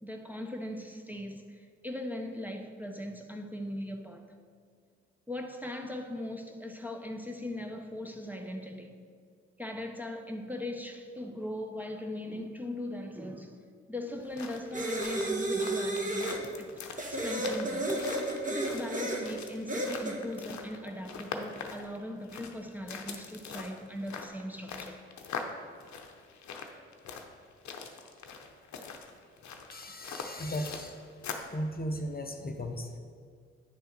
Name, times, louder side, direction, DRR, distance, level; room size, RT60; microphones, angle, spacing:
voice 1, 0.0-4.3 5.3-9.0 9.6-13.6 13.9-16.7 17.1-17.9 18.5-25.0, left 1 dB, 5° right, 3 dB, 0.7 m, -39 dB
sound 1, 14.1-31.6, left 5 dB, 70° left, 0.7 m, -43 dB
sound 2, 14.7-16.4 17.0-19.2 19.7-20.2, right 1 dB, 25° right, 1.4 m, -32 dB
voice 2, 29.7-31.0 31.5-33.0, equal, 30° left, 4 dB, 0.7 m, -36 dB
9.0 x 3.4 x 4.5 m, 2.1 s
supercardioid pair, 45°, 30 cm